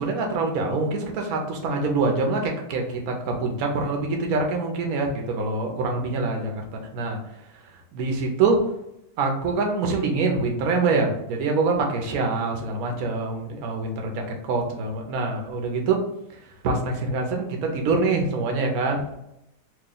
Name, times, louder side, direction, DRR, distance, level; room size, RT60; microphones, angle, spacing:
voice 1, 0.0-7.2 7.9-8.6 9.2-14.2 14.5-16.0 16.6-19.1, right 3 dB, 70° right, 2 dB, 1.1 m, -25 dB
3.0 x 2.7 x 3.8 m, 0.84 s
omnidirectional pair, 1.7 m